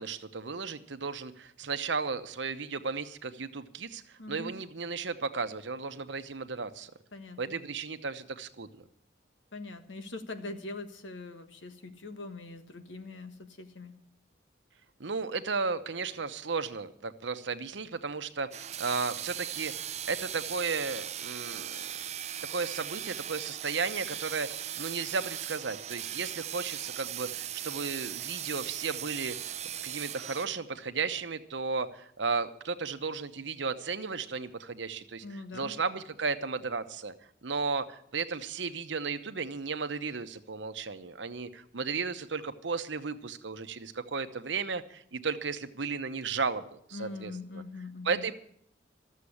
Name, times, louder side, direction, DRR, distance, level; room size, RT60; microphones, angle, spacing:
voice 1, 0.0-6.9 7.4-8.7 15.0-21.8 22.5-29.5 29.8-35.2 35.5-37.1 37.4-47.6 48.0-48.3, right 4 dB, 80° right, 10 dB, 0.9 m, -34 dB
voice 2, 4.2-4.5 7.1-7.6 9.5-13.9 35.2-35.7 46.9-48.2, left 2 dB, 90° left, 8 dB, 1.4 m, -42 dB
sound 1, 18.5-30.5, right 11 dB, 35° right, 0.4 m, -38 dB
13.5 x 7.5 x 9.8 m, 0.68 s
head